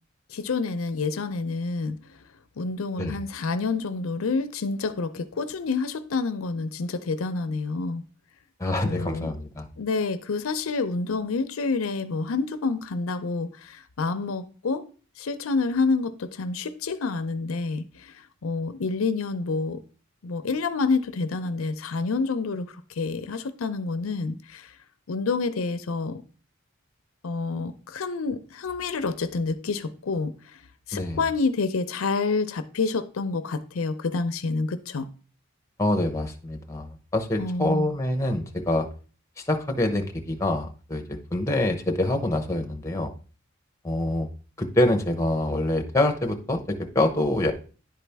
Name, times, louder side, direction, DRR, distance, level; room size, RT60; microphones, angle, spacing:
voice 1, 0.3-2.0 2.6-8.0 8.8-9.3 9.8-14.8 15.2-18.1 18.4-19.8 20.2-24.7 25.1-26.2 27.2-30.3 30.9-35.1 37.4-37.9, left 4 dB, 85° left, 0.5 m, -28 dB
voice 2, 8.6-9.6 30.9-31.2 35.8-38.9 39.5-43.1 43.8-44.3 44.6-47.5, left 1 dB, 15° left, 0.8 m, -25 dB
10.5 x 4.1 x 3.4 m
head